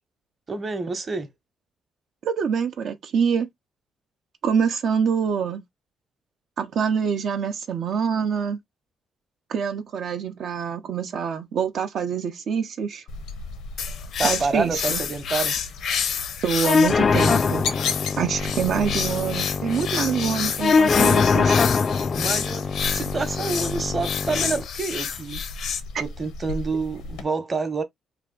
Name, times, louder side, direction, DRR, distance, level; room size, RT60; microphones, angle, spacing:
voice 1, 0.5-1.3 14.2-15.6 22.1-25.4 26.0-27.8, right 4 dB, 35° right, 0.9 m, -28 dB
voice 2, 2.2-3.5 4.4-5.6 6.6-8.6 9.5-13.0 14.2-15.0 16.4-17.7 18.2-21.6, right 7 dB, 65° right, 0.6 m, -25 dB
sound 1, 13.1-27.2, left 4 dB, 90° left, 0.9 m, -37 dB
sound 2, 13.8-25.8, left 7 dB, 70° left, 0.6 m, -29 dB
sound 3, 16.6-24.6, left 5 dB, 40° left, 0.3 m, -23 dB
3.4 x 2.4 x 3.7 m
cardioid pair, 90°, 0 cm